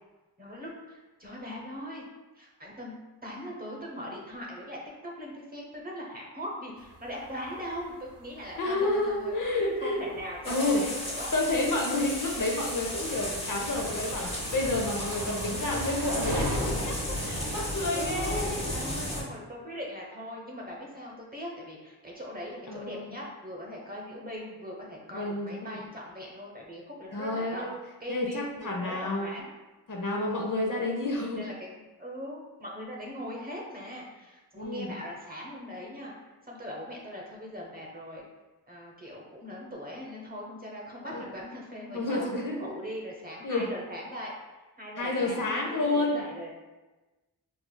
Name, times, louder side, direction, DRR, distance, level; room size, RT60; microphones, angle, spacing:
voice 1, 0.4-2.0 2.4-9.3 9.8-11.3 17.9-27.7 28.0-29.5 31.3-36.1 36.5-38.2 38.7-44.3 44.8-46.5, equal, 20° right, -2 dB, 0.8 m, -40 dB
sound 1, 6.8-16.6, right 3 dB, 60° right, 0.6 m, -43 dB
voice 2, 8.6-10.0 10.5-10.8 11.3-17.0 17.2-18.6 22.7-23.2 25.1-25.8 27.1-27.7 28.1-29.3 29.9-31.4 34.5-34.9 41.1-41.2 41.9-42.7 43.4-43.7 45.0-46.2, left 2 dB, 50° left, -1 dB, 0.7 m, -30 dB
sound 2, 10.4-19.2, left 1 dB, 15° left, 1.0 m, -34 dB
4.6 x 2.4 x 2.2 m, 1.2 s
cardioid pair, 55°, 41 cm